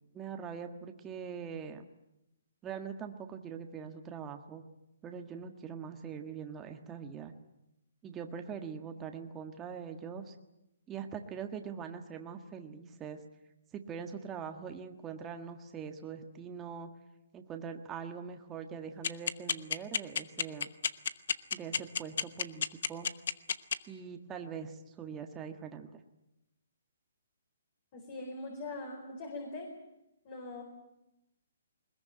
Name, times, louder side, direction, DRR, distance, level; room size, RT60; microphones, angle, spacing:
voice 1, 0.1-1.8 2.6-4.6 5.0-7.3 8.0-10.3 10.9-13.2 13.7-16.9 17.3-20.7 21.5-23.1 23.9-26.0, right 7 dB, 15° right, 5 dB, 1.6 m, -42 dB
sound 1, 19.0-23.7, left 7 dB, 65° left, 1.0 m, -29 dB
voice 2, 27.9-29.7 30.2-30.6, left 2 dB, 35° left, 3 dB, 4.6 m, -41 dB
21.0 x 21.0 x 9.1 m, 0.89 s
hypercardioid pair, 160°, 0 cm